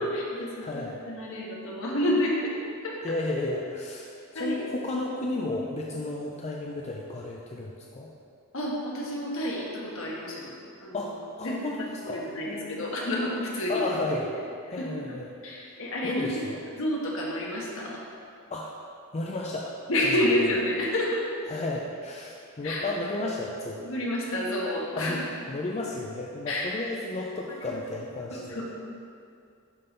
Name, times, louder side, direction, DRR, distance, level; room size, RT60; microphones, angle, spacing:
voice 1, 0.0-2.5 2.8-3.0 4.3-4.6 8.5-11.1 11.4-13.8 14.1-14.2 14.7-15.2 15.4-16.5 16.8-18.0 19.9-21.2 22.6-22.9 23.8-25.3 26.5-26.7 27.6-27.8 28.3-28.7, left 1 dB, 65° left, -3 dB, 1.4 m, -29 dB
voice 2, 0.6-1.0 3.0-8.1 10.9-12.9 13.7-14.3 14.7-15.3 16.0-16.6 18.5-18.8 19.1-19.7 21.5-23.8 25.0-25.2 25.5-28.6, left 2 dB, 30° left, -2 dB, 0.5 m, -33 dB
11.0 x 3.8 x 4.0 m, 2.3 s
head